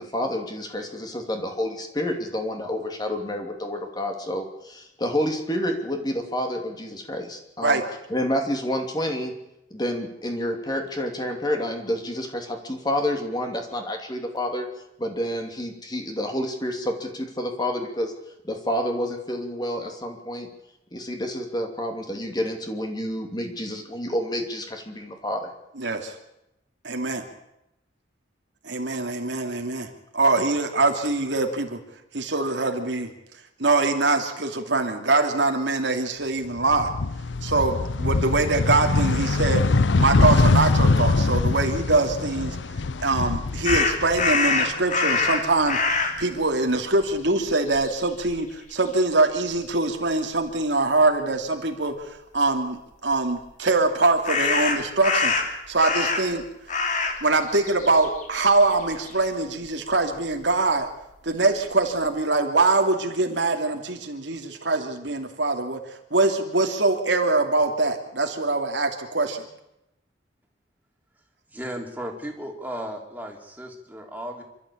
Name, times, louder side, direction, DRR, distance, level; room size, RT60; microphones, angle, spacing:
voice 1, 0.0-7.8 8.1-9.3 9.7-14.7 15.0-18.1 18.4-20.5 20.9-25.5, left 1 dB, 25° left, 4 dB, 2.8 m, -29 dB
voice 2, 25.8-26.1 26.8-27.2 28.6-29.9 30.1-31.8 32.1-33.1 33.6-36.9 37.4-42.6 43.0-45.8 46.2-55.3 55.7-56.4 57.2-60.9 61.2-65.8 66.1-69.4, right 3 dB, 80° right, 4 dB, 2.7 m, -23 dB
sound 1, 36.6-44.7 45.1-46.2, left 3 dB, 85° left, 0.7 m, -23 dB
sound 2, 43.6-46.2 47.0-47.2 47.5-48.4 54.2-56.4 56.7-57.2 57.5-59.1, left 4 dB, 45° left, 2.9 m, -24 dB
voice 3, 71.5-74.4, equal, 10° right, 1 dB, 3.3 m, -35 dB
27.0 x 13.0 x 8.6 m, 0.87 s
head